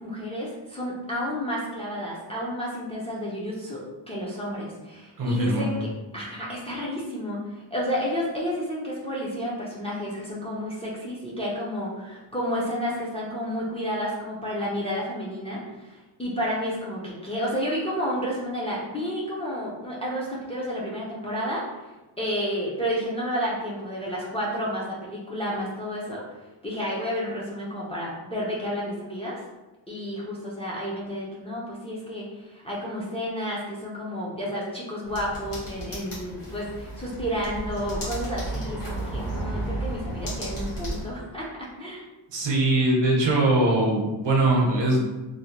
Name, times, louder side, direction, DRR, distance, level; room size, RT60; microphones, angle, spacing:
voice 1, 0.0-26.2 26.6-29.4 29.9-42.0, equal, 15° left, -6 dB, 0.3 m, -31 dB
voice 2, 5.2-5.7 42.3-45.0, right 1 dB, 70° right, -2 dB, 0.8 m, -21 dB
sound 1, 35.1-41.1, right 1 dB, 90° left, 1.2 m, -33 dB
2.6 x 2.0 x 2.8 m, 1.1 s
wide cardioid pair, 165°, 44 cm